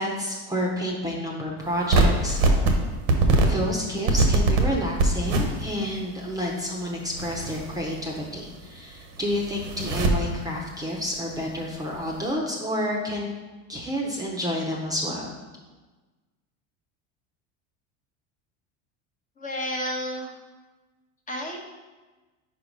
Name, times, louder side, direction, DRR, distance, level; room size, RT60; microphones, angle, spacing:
voice 1, 0.0-2.4 3.4-13.3 13.7-15.4, equal, 10° right, -2 dB, 0.8 m, -29 dB
sound 1, 1.8-2.7 3.1-3.5 4.1-4.6 5.0-5.9 6.2-6.3 7.1-8.4 8.6-8.7 9.0-10.1 11.3-11.8, right 3 dB, 80° right, 1.2 m, -22 dB
voice 2, 19.4-20.3 21.3-21.7, equal, 20° left, 0 dB, 0.9 m, -31 dB
4.8 x 4.7 x 5.2 m, 1.2 s
supercardioid pair, 125°, 37 cm